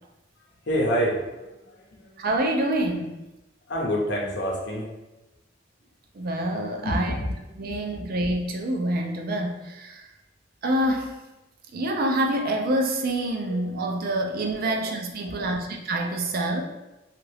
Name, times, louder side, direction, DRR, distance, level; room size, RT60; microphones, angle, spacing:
voice 1, 0.7-1.2 1.7-2.2 3.7-4.9 6.8-7.3 7.7-8.1 13.6-13.7 14.6-14.8 15.2-15.5, equal, 65° left, -2 dB, 0.8 m, -28 dB
voice 2, 2.2-3.2 6.2-7.2 7.6-10.0 10.6-11.2 11.7-16.6, right 1 dB, 50° right, 2 dB, 0.4 m, -26 dB
2.7 x 2.4 x 3.2 m, 1.0 s
head